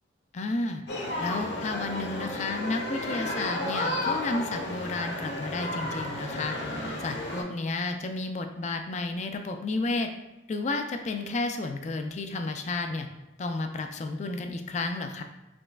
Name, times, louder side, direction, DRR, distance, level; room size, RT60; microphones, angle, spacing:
voice 1, 0.3-0.8 1.2-6.6 7.0-10.1 10.5-13.1 13.4-15.2, left 3 dB, 35° left, 6 dB, 0.3 m, -32 dB
sound 1, 0.9-7.4, left 1 dB, 65° left, 0.8 m, -32 dB
5.1 x 3.2 x 2.3 m, 0.95 s
head